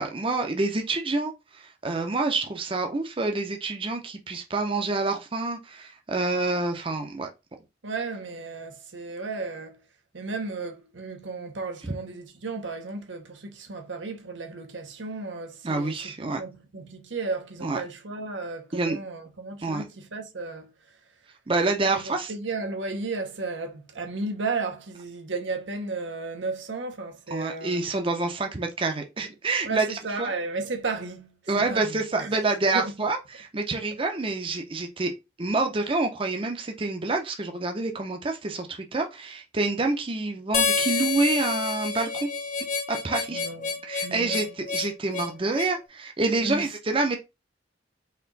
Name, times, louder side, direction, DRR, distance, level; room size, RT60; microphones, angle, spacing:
voice 1, 0.0-7.3 15.6-16.4 17.6-17.8 18.7-19.0 19.6-19.8 21.5-22.3 27.3-30.3 31.5-35.1 35.4-42.3 42.9-43.4 43.8-47.2, right 3 dB, 30° right, 0.6 m, -27 dB
voice 2, 7.8-9.8 10.1-16.0 16.3-20.7 21.9-27.8 29.6-32.9 43.3-44.5 46.4-46.7, right 3 dB, 90° right, 1.1 m, -34 dB
Harmonica, 40.5-45.8, left 5 dB, 40° left, 0.8 m, -28 dB
4.4 x 3.0 x 4.0 m
head